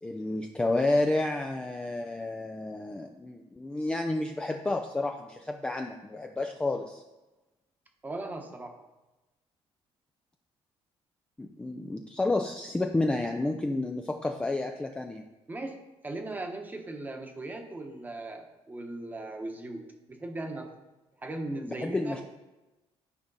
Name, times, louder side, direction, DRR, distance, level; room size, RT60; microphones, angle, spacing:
voice 1, 0.0-7.0 11.4-15.2 21.8-22.2, left 2 dB, 10° left, 3 dB, 0.4 m, -30 dB
voice 2, 8.0-8.7 15.5-15.8 16.0-19.8 20.1-20.7 21.2-22.2, right 2 dB, 15° right, 4 dB, 1.0 m, -38 dB
11.0 x 5.0 x 4.0 m, 1.1 s
cardioid pair, 155°, 11 cm